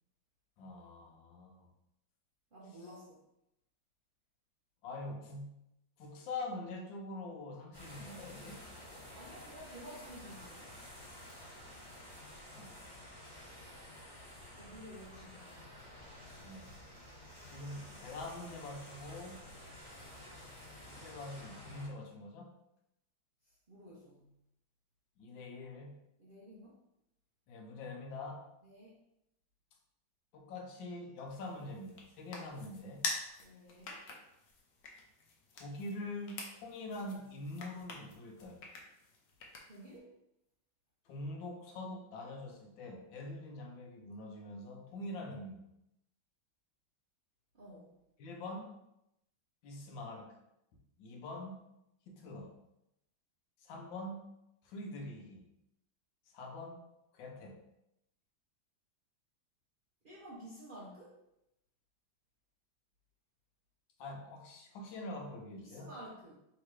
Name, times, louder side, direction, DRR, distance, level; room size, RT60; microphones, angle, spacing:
voice 1, 0.6-1.7 4.8-5.7 6.0-8.6 12.5-12.9 16.4-16.7 17.4-19.4 20.9-22.5 25.2-26.1 27.5-28.5 30.3-33.1 35.5-38.6 41.1-45.6 48.2-48.8 49.6-50.4 51.0-51.6 52.1-52.6 53.6-54.3 54.6-55.4 56.3-56.8 57.1-57.6 64.0-65.9, left 2 dB, 85° left, 2 dB, 1.5 m, -44 dB
voice 2, 2.5-3.2 9.1-10.7 14.5-15.6 23.7-24.2 26.2-26.8 28.6-29.0 33.4-34.0 39.6-40.1 47.5-48.0 60.0-61.2 65.6-66.3, equal, 75° right, -6 dB, 0.4 m, -52 dB
sound 1, 7.7-21.9, left 1 dB, 15° left, 0.9 m, -51 dB
sound 2, 31.3-40.0, left 3 dB, 65° left, 1.1 m, -46 dB
3.5 x 2.9 x 4.6 m, 0.84 s
omnidirectional pair, 2.1 m